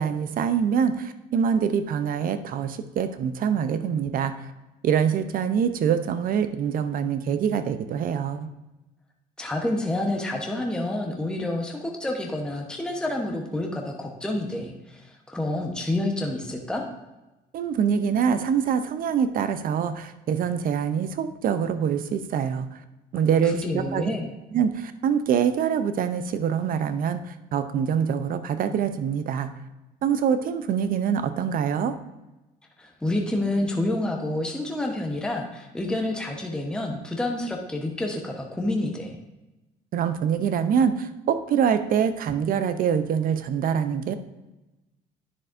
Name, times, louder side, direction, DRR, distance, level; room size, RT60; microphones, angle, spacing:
voice 1, 0.0-4.3 4.8-8.5 17.5-22.8 23.1-24.1 24.5-29.5 30.0-32.0 39.9-44.1, right 7 dB, 55° right, 11 dB, 0.6 m, -25 dB
voice 2, 9.4-16.8 23.4-24.3 32.8-39.2, left 1 dB, 5° left, 1 dB, 1.0 m, -28 dB
10.0 x 6.5 x 2.6 m, 1.0 s
cardioid pair, 110°, 17 cm